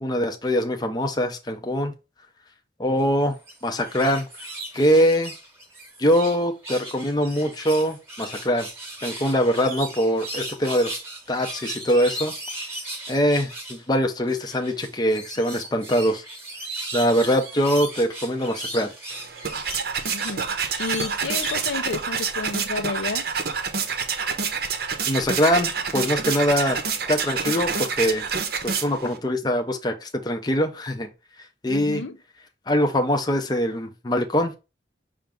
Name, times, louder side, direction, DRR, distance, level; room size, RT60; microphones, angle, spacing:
voice 1, 0.0-1.9 2.8-3.3 3.6-4.3 4.7-5.3 6.0-8.7 9.0-11.0 11.3-12.3 13.1-16.2 16.9-18.9 25.0-26.8 27.1-28.3 28.6-31.1 31.6-32.0 32.7-34.5, equal, 20° left, 0.6 m, -23 dB
sound 1, 3.3-6.4 6.6-13.8 14.3-21.7 22.2-22.3, right 1 dB, 15° right, 1.1 m, -37 dB
sound 2, 19.1-29.2, right 6 dB, 55° right, 0.7 m, -27 dB
voice 2, 20.1-20.4 20.8-23.2 31.7-32.2, left 4 dB, 80° left, 0.6 m, -31 dB
5.7 x 2.5 x 3.5 m
head